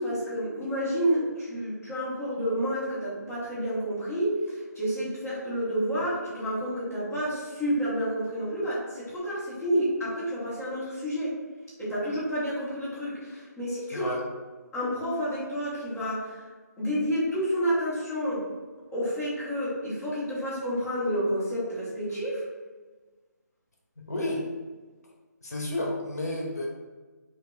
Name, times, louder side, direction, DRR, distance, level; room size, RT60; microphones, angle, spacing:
voice 1, 0.0-11.3 11.8-14.1 14.7-16.4 16.8-18.5 18.9-22.4, equal, 5° left, -15 dB, 0.8 m, -29 dB
voice 2, 13.9-14.2 24.0-24.4 25.4-26.7, left 1 dB, 60° left, -1 dB, 0.9 m, -31 dB
3.5 x 2.4 x 3.7 m, 1.3 s
hypercardioid pair, 175°, 10 cm